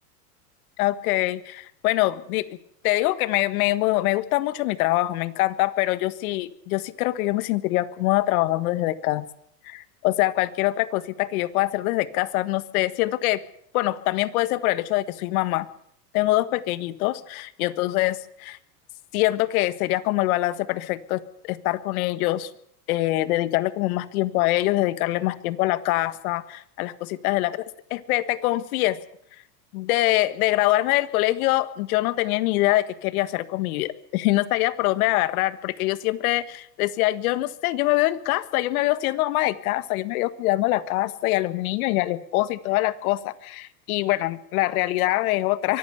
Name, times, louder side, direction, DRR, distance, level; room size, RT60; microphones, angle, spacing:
voice 1, 0.8-2.4 2.8-9.2 9.6-13.4 13.7-15.7 16.1-18.6 19.1-22.5 22.9-27.6 27.9-29.0 29.7-45.8, left 17 dB, 65° left, 14 dB, 1.6 m, -24 dB
23.5 x 14.5 x 8.1 m, 0.69 s
supercardioid pair, 125°, 46 cm